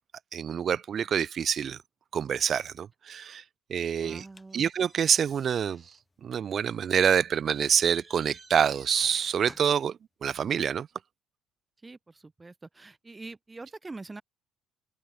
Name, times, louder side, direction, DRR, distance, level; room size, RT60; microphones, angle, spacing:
voice 1, 0.3-1.8 2.1-3.4 3.7-4.3 4.5-5.8 6.2-10.9, right 8 dB, 45° right, 0.5 m, -26 dB
voice 2, 4.0-4.6 11.8-14.2, right 3 dB, 15° right, 3.0 m, -44 dB
sound 1, 4.1-9.9, left 2 dB, 15° left, 1.8 m, -58 dB
open air
cardioid pair, 115°, 0 cm